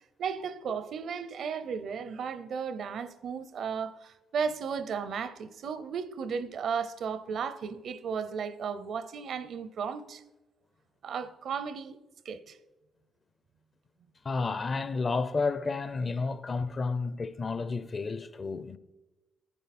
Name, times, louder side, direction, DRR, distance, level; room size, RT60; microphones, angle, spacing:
voice 1, 0.2-10.2 11.0-12.0 12.2-12.6, right 6 dB, 65° right, 0.6 m, -35 dB
voice 2, 14.2-18.8, left 4 dB, 35° left, 0.6 m, -31 dB
10.5 x 9.1 x 4.2 m
cardioid pair, 90°, 0 cm